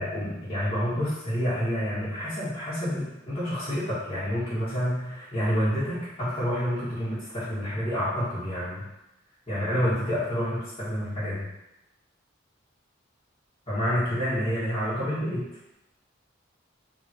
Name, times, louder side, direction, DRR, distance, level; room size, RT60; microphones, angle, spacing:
voice 1, 0.0-8.9 9.5-11.5 13.7-15.5, equal, 30° left, -14 dB, 1.7 m, -28 dB
3.6 x 3.0 x 4.7 m, 0.92 s
head